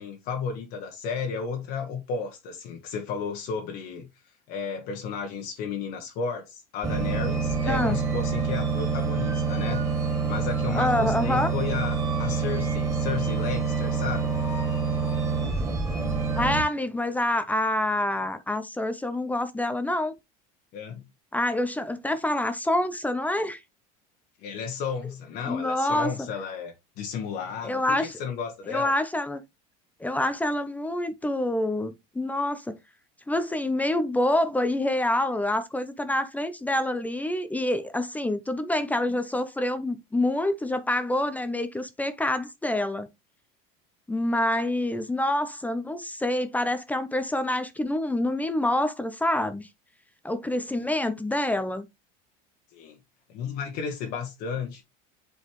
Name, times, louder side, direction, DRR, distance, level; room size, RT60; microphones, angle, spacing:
voice 1, 0.0-4.1 4.5-9.8 10.3-14.3 20.7-21.0 24.4-28.9 52.7-53.0 53.3-54.8, left 6 dB, 60° left, 1.4 m, -33 dB
sound 1, 6.8-16.6, right 5 dB, 15° right, 2.6 m, -27 dB
voice 2, 10.7-11.5 16.4-20.1 21.3-23.6 25.4-26.1 27.6-28.2 28.7-29.4 30.0-32.8 33.3-43.1 44.1-49.7 50.2-51.9, left 1 dB, 10° left, 0.6 m, -27 dB
8.0 x 4.0 x 3.0 m
supercardioid pair, 120°, 18 cm